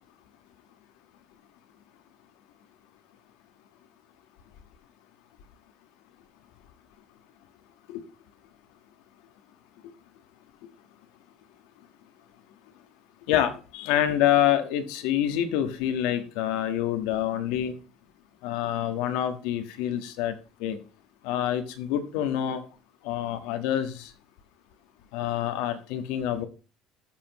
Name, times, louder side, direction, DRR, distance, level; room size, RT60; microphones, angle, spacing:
voice 1, 13.3-17.7 18.4-20.8 21.2-22.6 23.0-24.1 25.1-26.4, left 11 dB, 75° left, 9 dB, 1.4 m, -27 dB
19.0 x 6.9 x 3.1 m, 0.36 s
cardioid pair, 180°, 0 cm